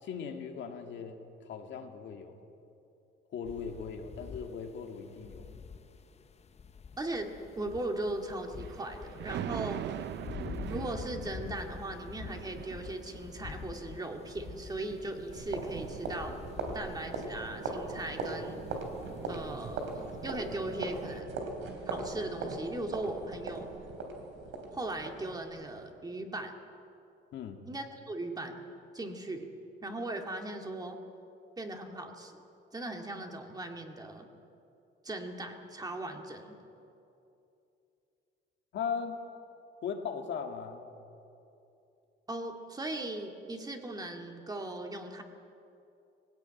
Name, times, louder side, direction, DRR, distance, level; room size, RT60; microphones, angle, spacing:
voice 1, 0.0-2.3 3.3-5.5 27.3-27.6 38.7-39.2 39.8-40.8, left 6 dB, 65° left, 4 dB, 2.1 m, -38 dB
sound 1, 3.4-21.2, left 6 dB, 30° left, 0.7 m, -47 dB
voice 2, 7.0-9.8 10.7-16.3 16.7-18.6 19.3-21.4 21.9-23.7 24.7-26.5 27.7-28.6 28.9-29.5 29.8-31.0 31.6-32.4 32.7-34.3 35.0-36.5 42.3-45.2, right 2 dB, 20° right, 3 dB, 2.1 m, -38 dB
Thunder, 8.4-16.8 17.2-17.3, right 12 dB, 60° right, 0.5 m, -43 dB
sound 2, 15.3-25.9, right 3 dB, 80° right, 3.3 m, -39 dB
19.0 x 17.0 x 9.0 m, 2.8 s
cardioid pair, 115°, 20 cm